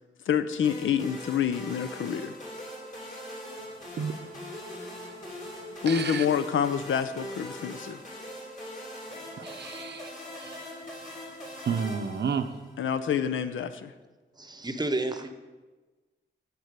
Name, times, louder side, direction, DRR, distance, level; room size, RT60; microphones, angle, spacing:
voice 1, 0.3-2.3 5.8-8.0 12.8-13.9, left 8 dB, 85° left, 11 dB, 0.5 m, -27 dB
sound 1, 0.6-12.8, left 1 dB, 40° left, 2.9 m, -41 dB
voice 2, 5.9-6.3 9.4-10.1 10.4-10.7 11.6-12.6, right 6 dB, 60° right, 9 dB, 0.6 m, -31 dB
voice 3, 14.4-15.3, right 2 dB, 20° right, 8 dB, 0.8 m, -31 dB
9.5 x 4.4 x 6.7 m, 1.2 s
cardioid pair, 80°, 20 cm